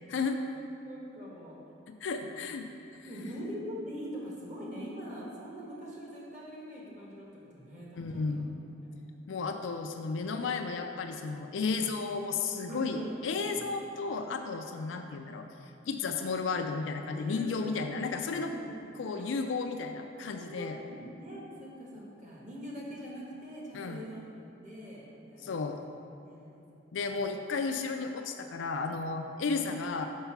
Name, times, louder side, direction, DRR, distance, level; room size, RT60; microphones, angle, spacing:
voice 1, 0.0-0.4 0.9-1.6 3.0-7.3 7.5-8.4 12.7-13.1 13.5-13.7 14.3-14.4 14.8-14.9 17.1-17.9 18.3-18.7 20.2-24.3 24.6-25.9 26.2-26.6, equal, 40° right, -4 dB, 1.4 m, -43 dB
voice 2, 1.9-3.1 7.9-8.6 9.3-15.5 15.9-18.5 19.0-20.8 23.7-24.0 25.4-25.8 26.9-30.1, left 4 dB, 85° left, 5 dB, 0.4 m, -33 dB
5.5 x 4.8 x 5.7 m, 2.9 s
head